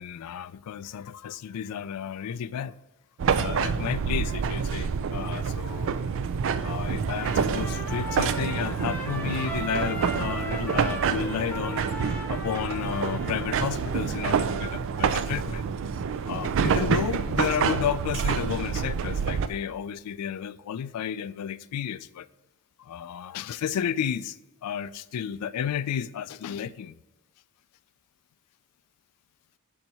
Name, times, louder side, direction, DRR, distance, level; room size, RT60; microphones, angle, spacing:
voice 1, 0.0-2.7 3.3-6.0 6.6-11.9 12.3-15.7 16.3-22.3 22.8-24.4 24.6-27.0, left 8 dB, 90° left, 0.3 m, -32 dB
sound 1, 3.2-19.5, right 6 dB, 60° right, 0.4 m, -27 dB
Trumpet, 7.1-13.7, equal, 10° left, 0.6 m, -38 dB
6.4 x 4.5 x 4.1 m
head